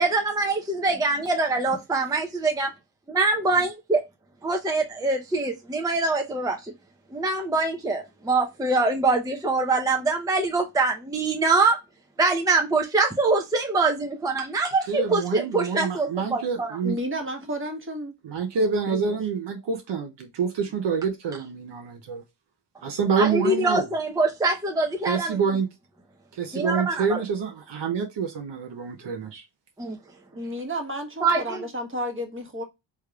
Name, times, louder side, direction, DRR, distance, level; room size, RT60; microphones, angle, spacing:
voice 1, 0.0-2.7 3.1-4.0 4.4-6.7 7.1-11.8 12.2-16.8 23.2-25.4 26.5-27.2 29.8-30.0 31.2-31.6, right 3 dB, 10° right, 0.6 m, -24 dB
voice 2, 14.9-17.0 18.2-22.2 22.8-23.8 25.1-25.7 26.3-29.4, right 5 dB, 60° right, 0.7 m, -27 dB
voice 3, 16.8-18.1 18.9-19.2 30.3-32.6, equal, 25° right, 1.2 m, -32 dB
3.4 x 3.1 x 2.3 m
cardioid pair, 55°, 49 cm